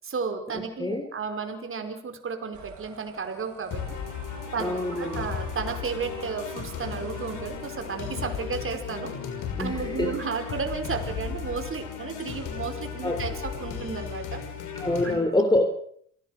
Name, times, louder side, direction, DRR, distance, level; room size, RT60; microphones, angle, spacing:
voice 1, 0.0-3.8 4.5-9.1 9.6-14.4 15.0-15.2, right 5 dB, 45° right, 6 dB, 5.2 m, -33 dB
voice 2, 0.5-1.1 4.6-5.3 9.6-10.1 13.0-13.2 14.8-15.6, left 2 dB, 15° left, 5 dB, 3.9 m, -26 dB
sound 1, 2.5-11.9 12.4-12.7 13.0-13.5, right 8 dB, 70° right, 6.4 m, -48 dB
sound 2, 3.7-15.1, left 7 dB, 80° left, 6.2 m, -35 dB
27.5 x 18.0 x 6.7 m, 0.62 s
cardioid pair, 90°, 30 cm